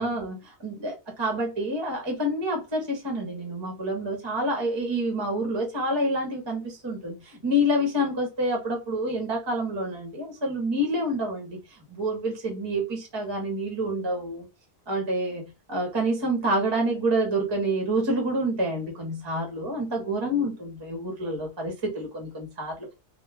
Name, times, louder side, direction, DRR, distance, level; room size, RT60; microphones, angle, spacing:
voice 1, 0.0-14.5 14.9-22.9, right 1 dB, 30° right, 0.7 m, -28 dB
2.2 x 2.2 x 3.2 m
omnidirectional pair, 1.2 m